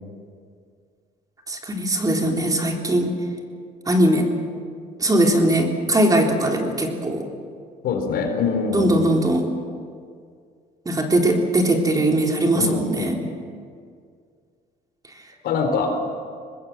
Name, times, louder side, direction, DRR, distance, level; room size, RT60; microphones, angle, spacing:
voice 1, 1.5-3.1 3.9-4.3 5.0-7.3 8.7-9.5 10.9-13.2, right 1 dB, 20° right, 1 dB, 3.6 m, -20 dB
voice 2, 7.8-9.2 12.5-13.3 15.4-16.0, left 4 dB, 70° left, 5 dB, 4.3 m, -24 dB
24.5 x 20.5 x 7.7 m, 2.1 s
cardioid pair, 110°, 17 cm